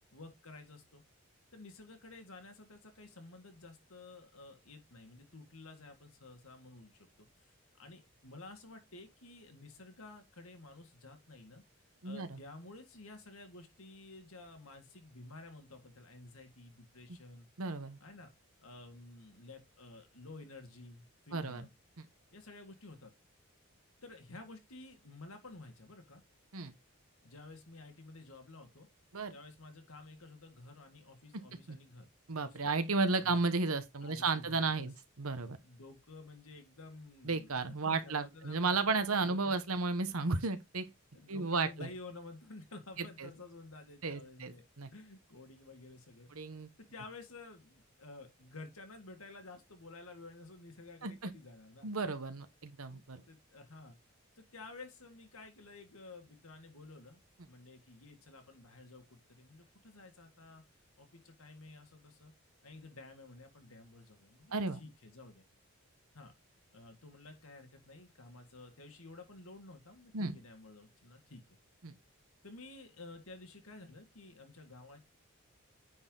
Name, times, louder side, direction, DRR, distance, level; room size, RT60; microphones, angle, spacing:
voice 1, 0.1-1.0 1.5-11.6 12.0-17.5 18.0-18.3 18.6-21.7 22.3-23.1 24.0-26.2 27.2-28.9 29.3-32.1 32.4-32.7 33.2-33.4 34.0-34.9 35.6-39.6 41.1-46.3 46.9-51.9 52.9-54.0 54.4-57.2 57.5-62.3 62.6-65.4 66.1-66.3 66.7-71.6 72.4-75.0, left 2 dB, 75° left, 1.9 m, -52 dB
voice 2, 12.0-12.4 17.6-18.0 21.3-21.7 22.0-22.1 26.5-26.7 29.1-29.3 31.7-31.8 32.3-35.6 37.2-40.8 41.3-41.9 43.2-43.3 44.0-44.9 46.3-46.7 51.0-51.3 51.8-53.2 64.5-64.8 70.1-70.4 71.8-71.9, right 3 dB, 80° right, 1.2 m, -33 dB
9.7 x 4.5 x 3.9 m
head